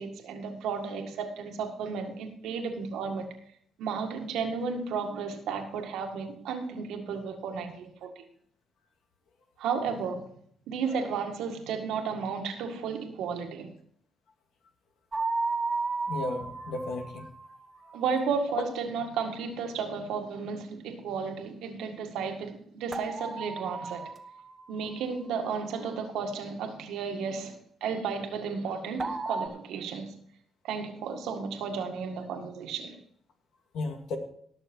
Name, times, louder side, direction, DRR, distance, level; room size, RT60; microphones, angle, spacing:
voice 1, 0.0-3.3 3.8-8.2 9.6-10.3 10.7-13.7 17.9-24.1 24.7-27.5 27.8-30.2 30.6-33.0, right 5 dB, 85° right, 4 dB, 1.8 m, -33 dB
sound 1, 15.1-18.1 22.9-25.1 29.0-29.5, right 3 dB, 25° right, 1.3 m, -34 dB
voice 2, 16.1-17.3 33.7-34.2, left 2 dB, 75° left, 4 dB, 2.2 m, -34 dB
18.5 x 6.7 x 4.5 m, 0.64 s
cardioid pair, 90°, 0 cm